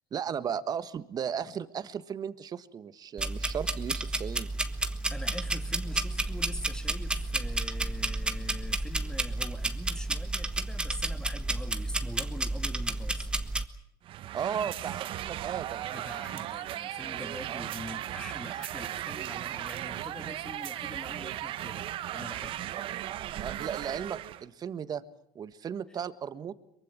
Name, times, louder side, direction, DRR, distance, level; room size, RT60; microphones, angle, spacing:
voice 1, 0.1-4.5 14.3-15.9 17.5-17.7 23.4-25.0 25.3-26.5, right 8 dB, 40° right, 13 dB, 1.5 m, -35 dB
sound 1, 3.2-13.6, right 2 dB, 10° right, 1.6 m, -31 dB
voice 2, 4.8-13.3 15.9-22.8, left 1 dB, 5° left, 8 dB, 2.4 m, -44 dB
sound 2, 14.0-24.4, right 13 dB, 55° right, 1.1 m, -37 dB
23.5 x 23.0 x 7.5 m, 0.74 s
supercardioid pair, 90°, 11 cm